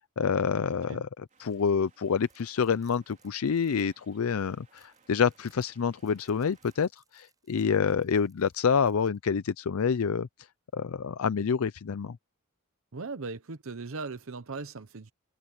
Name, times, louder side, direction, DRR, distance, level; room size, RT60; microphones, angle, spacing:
voice 1, 0.2-10.3 10.7-12.2, left 6 dB, 75° left, 0.5 m, -27 dB
sound 1, 1.3-1.7 2.1-9.2, right 5 dB, 15° right, 6.6 m, -68 dB
sound 2, 1.3-6.9, right 5 dB, 35° right, 4.7 m, -65 dB
voice 2, 12.9-15.1, right 4 dB, 65° right, 0.8 m, -38 dB
head